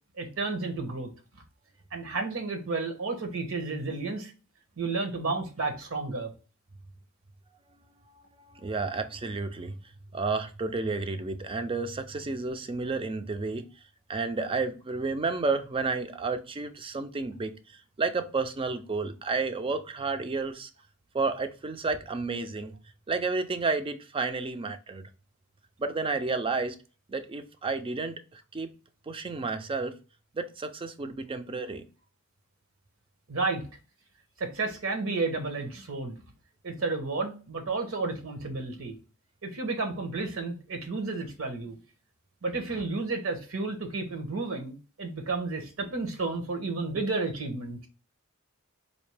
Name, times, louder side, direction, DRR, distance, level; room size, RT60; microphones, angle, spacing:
voice 1, 0.2-1.1 1.9-4.3 4.8-6.3 33.3-33.7 34.4-36.2 36.6-39.0 39.4-41.8 42.4-47.9, right 3 dB, 75° right, 5 dB, 1.0 m, -32 dB
voice 2, 8.5-9.7 10.1-13.7 14.1-20.7 21.1-22.7 23.1-25.1 25.8-26.8 27.1-28.7 29.1-29.9 30.3-31.9, right 3 dB, 25° right, 9 dB, 0.4 m, -31 dB
4.2 x 2.8 x 3.3 m, 0.33 s
head